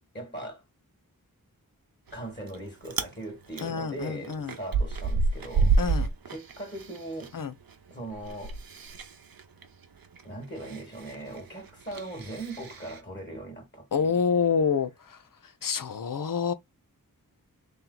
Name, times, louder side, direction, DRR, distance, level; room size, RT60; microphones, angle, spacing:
voice 1, 0.1-0.6 2.1-7.3 7.9-8.6 10.2-14.2, right 1 dB, 30° left, 2.0 m, -40 dB
Chewing mastication, 2.1-2.6 2.8-3.1 3.5-7.3 7.6-13.0, right 4 dB, 70° right, 0.8 m, -29 dB
voice 2, 3.6-4.5 5.8-6.1 7.3-7.5 13.9-14.9 15.6-16.5, left 6 dB, 65° left, 0.7 m, -27 dB
3.3 x 2.9 x 3.9 m
wide cardioid pair, 75°, 36 cm